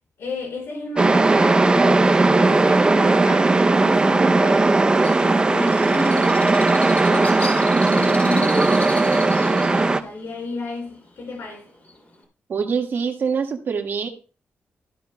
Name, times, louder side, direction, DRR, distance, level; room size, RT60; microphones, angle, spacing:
voice 1, 0.2-4.7 5.1-6.8 7.1-11.7, left 2 dB, 75° left, 4.9 m, -32 dB
sound 1, 1.0-10.0, right 3 dB, 20° right, 0.5 m, -17 dB
Bird, 5.0-12.2, left 3 dB, 35° left, 2.9 m, -37 dB
voice 2, 12.5-14.1, right 6 dB, 55° right, 1.6 m, -24 dB
14.0 x 11.0 x 2.2 m
wide cardioid pair, 155°, 4 cm